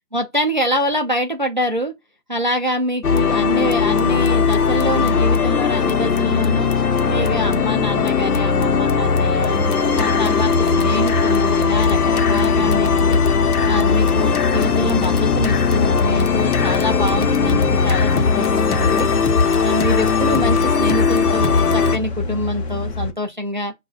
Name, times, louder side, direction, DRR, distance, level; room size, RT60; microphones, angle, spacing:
voice 1, 0.1-1.9 2.3-6.7 7.1-9.6 10.0-13.2 13.6-19.1 19.6-23.7, equal, 35° right, 0.4 m, -25 dB
sound 1, 3.0-22.0, left 5 dB, 70° left, 0.9 m, -18 dB
sound 2, 9.9-23.1, left 2 dB, 40° left, 0.8 m, -26 dB
6.0 x 2.4 x 2.3 m
hypercardioid pair, 150°, 47 cm